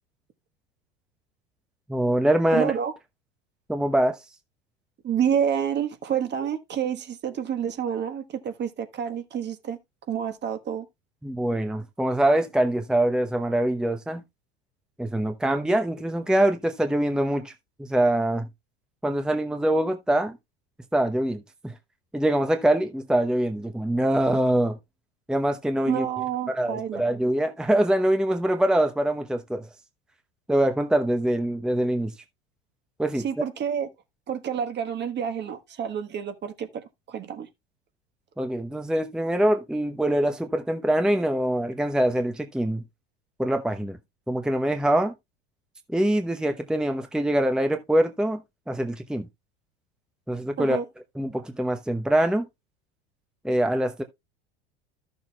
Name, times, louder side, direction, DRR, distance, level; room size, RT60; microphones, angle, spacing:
voice 1, 1.9-2.7 3.7-4.2 11.2-14.2 15.0-17.5 17.8-18.5 19.0-20.4 20.9-21.7 22.1-24.8 25.3-26.1 26.5-29.7 30.5-32.1 33.0-33.2 38.4-42.8 43.4-44.0 44.3-45.1 45.9-48.4 48.7-49.3 50.3-50.8 51.2-52.5 53.4-54.0, right 1 dB, ahead, 0.9 m, -24 dB
voice 2, 2.5-2.9 5.0-9.8 10.1-10.9 25.9-27.0 33.1-33.9 34.3-37.5 50.6-50.9, right 8 dB, 35° right, 1.4 m, -28 dB
13.5 x 6.8 x 2.3 m
hypercardioid pair, 85°, 30 cm